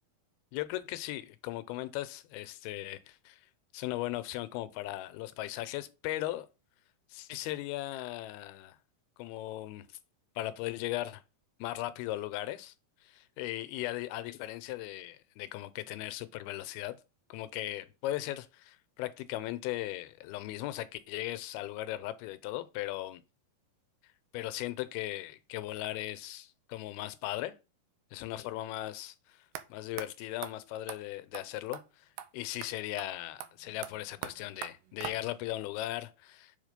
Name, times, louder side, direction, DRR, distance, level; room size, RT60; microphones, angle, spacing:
voice 1, 0.5-3.4 3.7-6.5 7.1-8.8 9.2-9.9 10.4-11.2 11.6-12.7 13.0-17.0 17.3-23.2 24.3-27.5 28.1-29.4 29.7-32.1 32.3-36.5, left 15 dB, 85° left, 2.6 m, -38 dB
sound 1, 29.6-29.7 30.0-30.1 30.4-30.5 30.9-31.0 31.3-31.5 31.7-31.8 32.2-32.3 32.6-32.7 33.0-33.1 33.4-35.5, right 12 dB, 85° right, 2.5 m, -42 dB
7.1 x 3.5 x 5.1 m
omnidirectional pair, 4.3 m